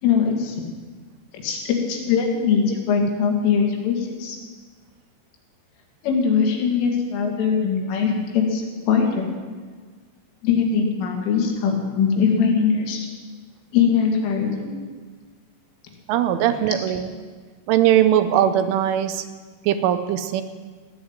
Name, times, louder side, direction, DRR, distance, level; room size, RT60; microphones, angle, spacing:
voice 1, 0.0-0.6 1.4-4.4 6.0-9.3 10.4-13.1 13.7-14.8, left 6 dB, 75° left, 2 dB, 4.5 m, -21 dB
voice 2, 16.1-17.1 17.7-19.3 19.6-20.4, right 11 dB, 80° right, 10 dB, 3.1 m, -20 dB
16.0 x 9.7 x 8.8 m, 1.5 s
omnidirectional pair, 5.8 m